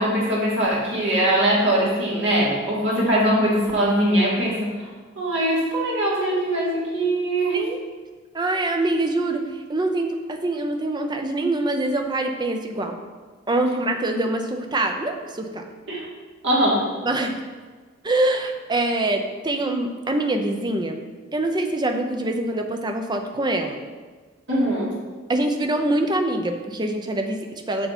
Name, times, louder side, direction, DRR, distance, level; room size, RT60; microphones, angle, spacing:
voice 1, 0.0-4.9 5.2-7.6 15.9-16.0 16.4-16.9 24.5-24.9, right 1 dB, 60° right, -6 dB, 2.6 m, -21 dB
voice 2, 8.3-13.0 13.5-15.7 17.0-17.4 18.0-21.0 21.3-23.8 25.3-27.9, right 2 dB, 20° right, 4 dB, 0.7 m, -24 dB
7.1 x 6.8 x 4.3 m, 1.4 s
head